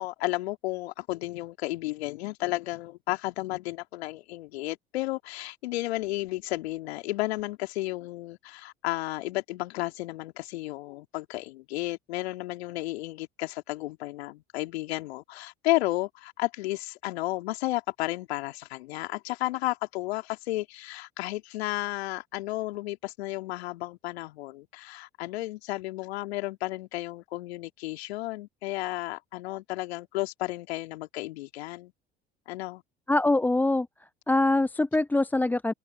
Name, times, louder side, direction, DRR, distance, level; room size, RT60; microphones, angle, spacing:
voice 1, 0.0-31.9 32.5-32.8, left 18 dB, 70° left, 2.9 m, -33 dB
voice 2, 33.1-33.9 34.3-35.7, left 2 dB, 5° left, 0.4 m, -23 dB
figure-of-eight pair, 60°, 32 cm